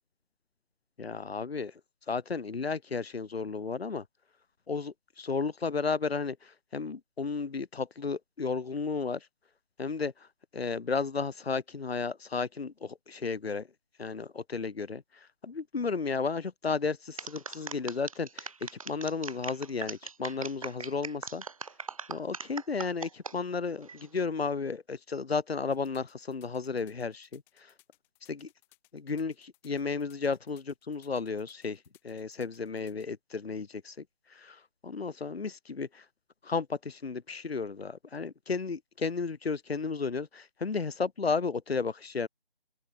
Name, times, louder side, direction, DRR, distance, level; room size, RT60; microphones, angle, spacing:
voice 1, 1.0-1.7 2.1-4.0 4.7-6.3 6.7-9.2 9.8-10.1 10.5-12.7 13.1-13.6 14.0-15.0 15.4-18.5 18.9-21.4 22.1-23.9 24.1-27.4 28.3-28.5 29.1-29.3 29.6-31.8 32.0-33.9 34.8-35.9 36.5-42.3, left 4 dB, 75° left, 0.8 m, -33 dB
sound 1, 17.2-23.3 23.8-24.2, right 5 dB, 35° right, 5.0 m, -40 dB
sound 2, 25.7-33.1, left 21 dB, 5° left, 4.7 m, -64 dB
open air
figure-of-eight pair, 165°, 31 cm